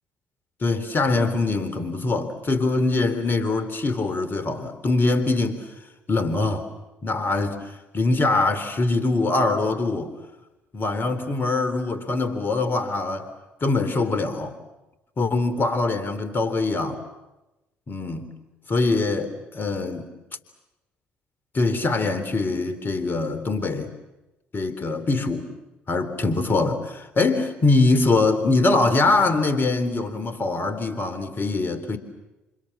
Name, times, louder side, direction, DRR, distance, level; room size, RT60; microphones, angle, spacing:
voice 1, 0.6-5.6 6.1-6.7 7.0-7.6 7.9-10.1 10.7-13.3 13.6-14.5 15.2-17.0 17.9-18.3 18.7-20.1 21.5-23.9 24.5-25.5 25.9-32.0, left 3 dB, 35° left, 11 dB, 3.6 m, -23 dB
29.5 x 27.0 x 7.5 m, 1.0 s
figure-of-eight pair, 45°, 6 cm